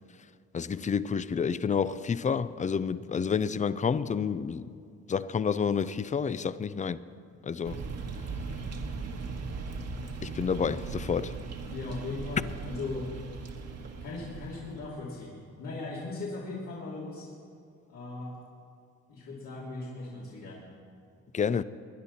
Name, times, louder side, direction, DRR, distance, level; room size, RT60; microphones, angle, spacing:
voice 1, 0.5-4.7 5.1-7.0 7.4-7.9 10.2-11.4 21.3-21.6, left 6 dB, 25° left, 0.5 m, -29 dB
sound 1, 7.6-14.9, right 4 dB, 55° right, 1.6 m, -38 dB
voice 2, 11.6-13.1 14.0-17.3 17.9-18.3 19.1-20.6, left 3 dB, 80° left, 3.1 m, -38 dB
21.0 x 10.5 x 4.2 m
cardioid pair, 90°, 30 cm